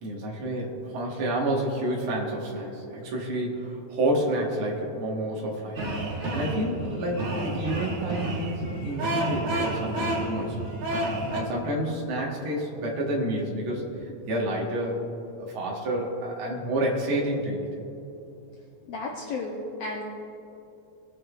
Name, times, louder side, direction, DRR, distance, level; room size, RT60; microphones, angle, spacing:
voice 1, 0.0-5.8 6.2-10.7 11.3-13.9 14.3-15.0 15.4-17.7, right 1 dB, 50° right, -3 dB, 2.1 m, -29 dB
sound 1, 5.8-11.4, right 1 dB, 70° right, 3.3 m, -30 dB
voice 2, 18.9-20.0, left 3 dB, 70° left, -2 dB, 1.8 m, -33 dB
21.5 x 7.8 x 2.5 m, 2.9 s
omnidirectional pair, 3.3 m